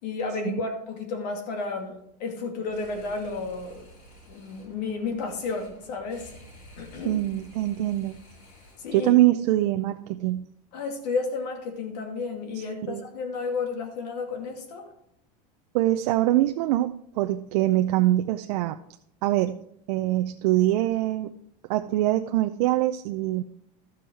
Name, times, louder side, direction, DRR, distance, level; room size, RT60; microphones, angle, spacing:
voice 1, 0.0-3.9 4.3-6.3 6.8-7.2 8.8-9.1 10.7-14.9, left 4 dB, 80° left, 4 dB, 2.4 m, -32 dB
sound 1, 2.6-9.1, equal, 40° left, 4.0 m, -51 dB
voice 2, 7.0-8.2 8.9-10.5 12.5-13.0 15.7-18.8 19.2-21.3 21.7-23.4, right 15 dB, 70° right, 7 dB, 0.5 m, -24 dB
13.0 x 6.3 x 4.5 m, 0.74 s
supercardioid pair, 150°, 21 cm